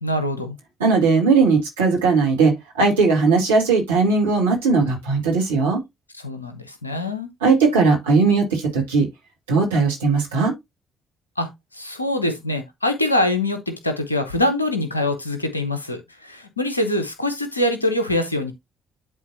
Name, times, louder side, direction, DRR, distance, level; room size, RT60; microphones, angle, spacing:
voice 1, 0.0-0.6 6.1-7.3 11.4-18.5, left 1 dB, 90° left, 0.9 m, -24 dB
voice 2, 0.8-5.8 7.4-9.1 9.5-10.5, right 4 dB, 80° right, 2.0 m, -18 dB
11.0 x 3.9 x 2.8 m
figure-of-eight pair, 45°, 0 cm